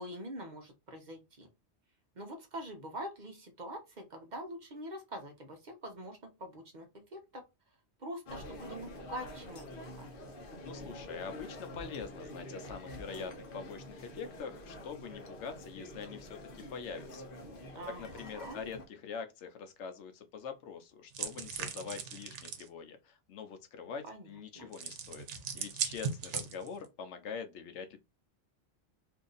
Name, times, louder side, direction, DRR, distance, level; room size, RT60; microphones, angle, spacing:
voice 1, 0.0-1.5 2.2-7.4 8.0-10.1 17.7-18.6 24.1-24.3 24.6-24.7, equal, 45° right, 0.8 m, -44 dB
sound 1, 8.3-18.9, left 1 dB, 55° left, 0.9 m, -47 dB
voice 2, 10.6-17.4 18.0-25.3 25.5-28.0, left 6 dB, 80° left, 0.9 m, -44 dB
sound 2, 21.1-22.7 24.7-26.8, right 7 dB, 80° right, 1.0 m, -38 dB
2.8 x 2.5 x 3.8 m
omnidirectional pair, 1.2 m